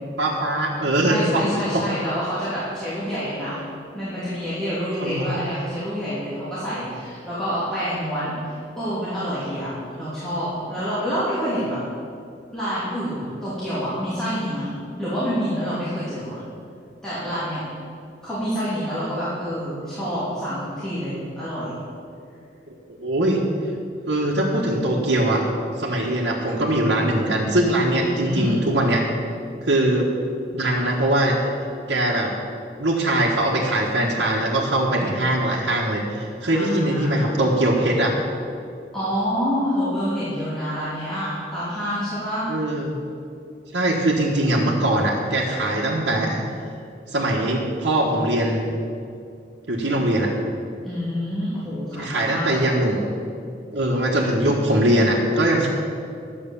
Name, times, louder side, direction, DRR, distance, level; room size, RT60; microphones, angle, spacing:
voice 1, 0.2-1.9 5.0-5.4 23.0-23.4 24.1-25.5 25.8-29.1 29.7-30.1 30.5-31.4 31.9-32.3 32.8-38.1 42.5-43.0 43.7-46.4 47.1-48.6 49.7-50.3 51.9-53.0 53.7-55.7, right 1 dB, 80° right, -6 dB, 1.4 m, -21 dB
voice 2, 1.0-3.6 3.9-11.8 12.5-14.7 15.0-16.4 17.0-17.6 18.2-21.8 28.0-28.6 36.5-37.4 38.9-42.5 50.8-52.6, equal, 5° left, -13 dB, 2.7 m, -27 dB
11.5 x 7.8 x 7.0 m, 2.5 s
head